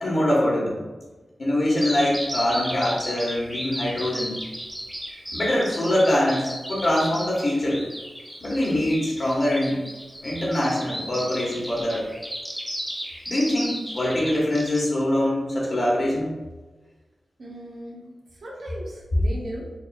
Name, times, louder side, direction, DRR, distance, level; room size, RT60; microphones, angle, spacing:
voice 1, 0.0-0.8 1.4-4.3 5.3-7.8 8.4-9.8 10.2-12.1 13.3-16.3, left 1 dB, 55° left, -4 dB, 1.4 m, -23 dB
Bird vocalization bird call bird song, 1.8-14.8, equal, 5° right, 1.0 m, -34 dB
voice 2, 17.4-19.7, right 1 dB, 70° right, -4 dB, 0.9 m, -38 dB
4.9 x 3.0 x 2.4 m, 1.2 s
cardioid pair, 50°, 0 cm